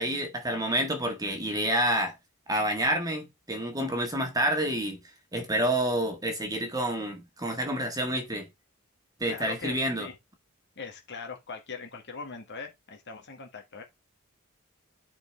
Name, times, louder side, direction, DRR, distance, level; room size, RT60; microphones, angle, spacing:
voice 1, 0.0-2.1 2.5-5.0 5.3-8.5 9.2-10.1, right 1 dB, 15° right, 1.7 m, -28 dB
voice 2, 9.2-10.2 10.8-13.8, left 4 dB, 55° left, 1.9 m, -41 dB
10.0 x 4.5 x 3.4 m
head